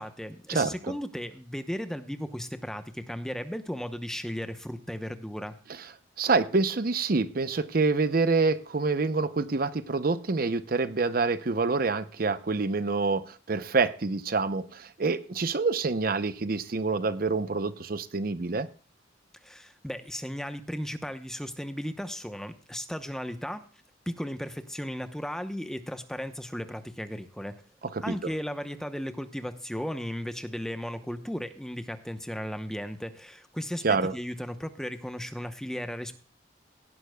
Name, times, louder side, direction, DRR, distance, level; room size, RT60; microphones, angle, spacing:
voice 1, 0.0-5.6 19.4-23.7 24.1-27.6 28.0-36.2, equal, 5° left, 9 dB, 0.8 m, -35 dB
voice 2, 6.2-18.7 27.9-28.1 33.8-34.1, right 4 dB, 50° right, 13 dB, 0.7 m, -27 dB
17.0 x 11.5 x 2.2 m, 0.40 s
head